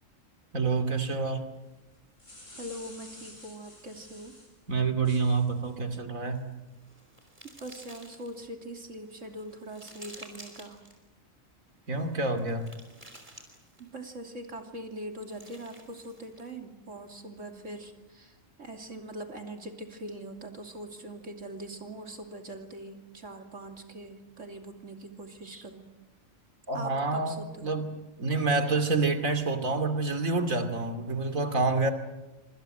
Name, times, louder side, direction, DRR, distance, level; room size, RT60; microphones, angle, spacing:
voice 1, 0.5-1.4 4.7-6.4 11.9-12.7 26.7-27.9 28.2-31.9, right 3 dB, 90° right, 8 dB, 3.0 m, -27 dB
sound 1, 1.9-4.5 5.0-5.7, left 1 dB, 65° left, 8.4 m, -50 dB
voice 2, 2.6-4.4 7.6-10.8 13.8-25.9 26.7-27.8, right 1 dB, 65° right, 4 dB, 3.2 m, -42 dB
sound 2, 6.2-8.5 9.0-11.0 11.9-14.0 15.0-16.5, right 1 dB, 35° right, 5.1 m, -52 dB
26.0 x 26.0 x 7.9 m, 1.1 s
omnidirectional pair, 1.4 m